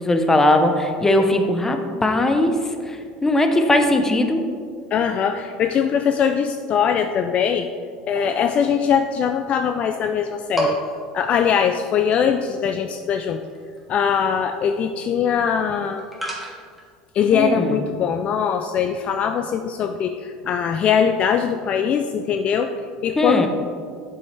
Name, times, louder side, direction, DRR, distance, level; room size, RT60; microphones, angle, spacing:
voice 1, 0.0-4.5 17.3-17.8 23.2-23.5, left 1 dB, 15° left, 6 dB, 0.8 m, -19 dB
voice 2, 4.9-7.7 8.1-10.8 11.1-13.4 13.9-16.0 17.1-22.7 23.0-23.5, left 7 dB, 45° left, 7 dB, 0.4 m, -21 dB
sound 1, 8.1-9.2 9.5-9.6 10.0-10.2 10.5-16.9, right 1 dB, 5° right, 1.5 m, -31 dB
8.2 x 6.9 x 3.3 m, 2.1 s
supercardioid pair, 100°, 3 cm